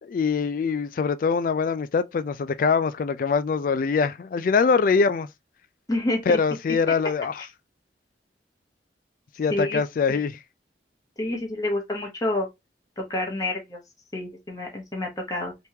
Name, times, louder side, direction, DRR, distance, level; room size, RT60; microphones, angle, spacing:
voice 1, 0.0-5.3 6.3-7.5 9.4-10.4, left 5 dB, 50° left, 0.3 m, -23 dB
voice 2, 5.9-6.4 9.5-9.8 10.1-10.2 11.2-12.5 13.0-13.8 14.1-15.7, left 1 dB, 20° left, 0.9 m, -28 dB
3.5 x 3.0 x 2.7 m
head